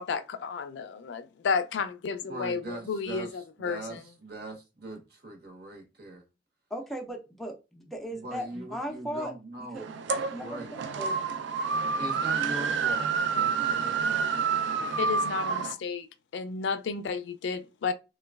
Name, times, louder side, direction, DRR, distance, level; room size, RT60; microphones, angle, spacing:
voice 1, 0.0-4.0 15.0-16.1 16.3-17.9, left 5 dB, 75° left, 0.3 m, -32 dB
voice 2, 2.3-6.2 8.1-9.9 10.1-10.7 12.0-15.1, right 2 dB, 55° right, 0.9 m, -41 dB
voice 3, 6.7-9.3 9.7-9.9 10.2-11.2, equal, ahead, 0.4 m, -37 dB
sound 1, 9.7-15.7, right 5 dB, 80° right, 0.4 m, -28 dB
3.0 x 2.2 x 2.2 m
head